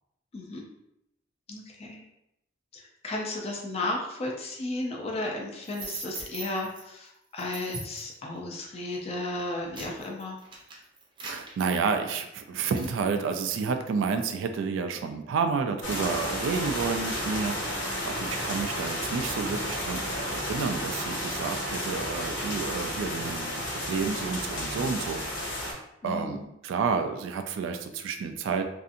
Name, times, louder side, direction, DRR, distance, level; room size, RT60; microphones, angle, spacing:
voice 1, 0.3-0.6 1.5-2.0 2.7-10.4 26.0-26.5, left 2 dB, 35° left, 0 dB, 0.4 m, -34 dB
sound 1, 5.6-6.8 7.4-8.1 8.8-9.0 9.4-12.3 12.7-13.0, right 3 dB, 25° right, 0.5 m, -41 dB
voice 2, 11.2-23.6 23.9-28.6, right 5 dB, 85° right, 8 dB, 0.3 m, -30 dB
sound 2, 15.8-25.7, left 1 dB, 70° left, 0.9 m, -32 dB
2.6 x 2.4 x 2.5 m, 0.84 s
head